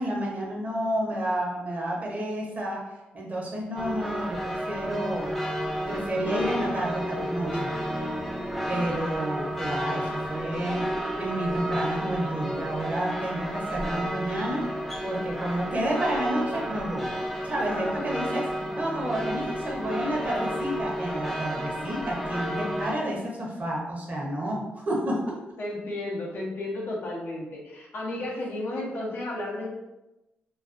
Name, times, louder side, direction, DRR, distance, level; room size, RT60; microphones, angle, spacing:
voice 1, 0.0-2.8 3.1-5.3 5.9-7.7 8.7-10.9 11.2-14.7 15.0-17.1 17.4-18.5 18.8-25.3, right 1 dB, 40° right, -3 dB, 0.7 m, -30 dB
sound 1, 3.8-22.9, equal, 5° left, 0.4 m, -31 dB
voice 2, 17.7-18.2 25.6-29.7, left 1 dB, 60° left, -3 dB, 0.7 m, -33 dB
2.3 x 2.2 x 2.4 m, 0.97 s
cardioid pair, 75°, 4 cm